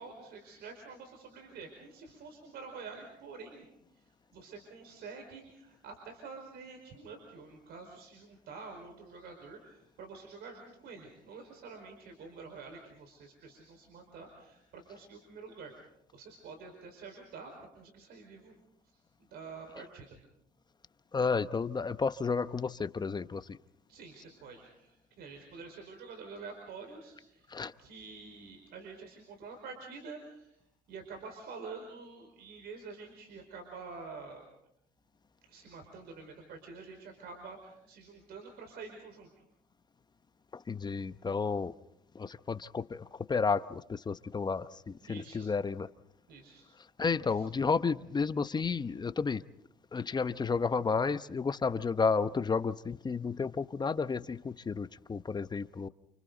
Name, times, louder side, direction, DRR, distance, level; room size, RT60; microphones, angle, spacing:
voice 1, 0.0-3.6 3.9-15.7 16.1-18.5 18.8-19.0 19.3-20.2 23.9-27.5 27.8-30.6 30.9-34.4 35.4-39.3 45.0-45.5 46.3-46.6 47.3-47.5, right 4 dB, 70° right, 3 dB, 5.0 m, -48 dB
voice 2, 21.1-23.6 27.5-27.7 40.5-41.7 42.1-45.9 47.0-49.4 49.9-55.9, left 5 dB, 25° left, 12 dB, 0.9 m, -32 dB
29.0 x 29.0 x 4.0 m, 0.77 s
cardioid pair, 110°, 17 cm